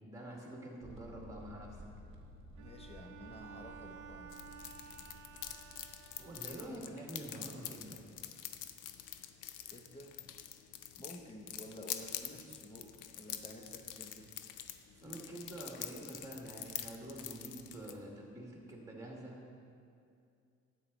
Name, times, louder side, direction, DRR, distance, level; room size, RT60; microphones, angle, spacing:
voice 1, 0.0-1.8 6.2-8.0 15.0-19.4, right 1 dB, 10° right, -2 dB, 2.1 m, -47 dB
sound 1, 0.8-6.7, equal, 45° right, 1.3 m, -55 dB
voice 2, 2.6-4.4 9.7-10.2 11.0-14.3, left 1 dB, 20° left, 3 dB, 1.1 m, -51 dB
Bowed string instrument, 2.6-7.2, right 8 dB, 80° right, 0.5 m, -54 dB
sound 2, 4.3-17.9, left 11 dB, 85° left, 0.6 m, -46 dB
10.0 x 7.9 x 4.1 m, 2.4 s
cardioid pair, 90°, 30 cm